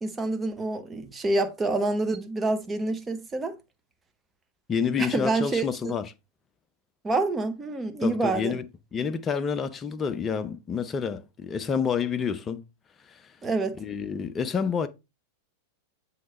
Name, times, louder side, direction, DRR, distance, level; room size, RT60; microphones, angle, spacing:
voice 1, 0.0-3.5 5.0-5.9 7.0-8.6 13.4-13.8, right 2 dB, 15° right, 0.9 m, -27 dB
voice 2, 4.7-6.0 8.0-8.7 8.9-12.6 13.1-13.3 13.8-14.9, left 6 dB, 20° left, 0.6 m, -28 dB
7.5 x 3.2 x 4.2 m
figure-of-eight pair, 90°, 0 cm